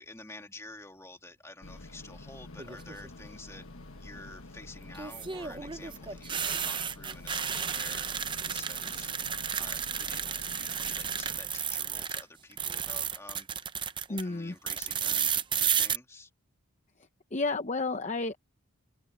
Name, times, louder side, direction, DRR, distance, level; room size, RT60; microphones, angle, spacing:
voice 1, 0.0-3.7 4.0-8.1 8.4-9.1 9.6-13.5 14.1-16.3, left 2 dB, 15° left, 2.7 m, -49 dB
sound 1, 1.6-11.4, left 2 dB, 70° left, 1.5 m, -48 dB
sound 2, 2.6-3.1 4.9-12.2 12.5-14.2 14.7-16.0, right 8 dB, 20° right, 0.6 m, -32 dB
voice 2, 14.1-14.6 17.3-18.4, left 3 dB, 30° left, 0.7 m, -31 dB
head